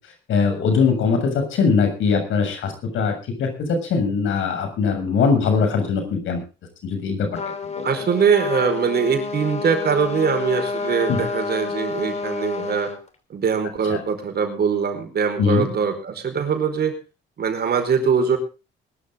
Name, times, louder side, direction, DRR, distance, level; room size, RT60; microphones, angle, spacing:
voice 1, 0.3-6.4 6.8-7.3 7.6-7.9 11.1-11.2 13.9-14.0 15.4-15.7, left 5 dB, 80° left, 5 dB, 7.0 m, -21 dB
Trumpet, 7.3-13.0, left 4 dB, 35° left, 3.2 m, -29 dB
voice 2, 7.8-12.9 13.3-16.9 17.4-18.4, right 6 dB, 55° right, 6 dB, 4.9 m, -22 dB
21.5 x 12.5 x 3.8 m, 0.33 s
cardioid pair, 90°, 20 cm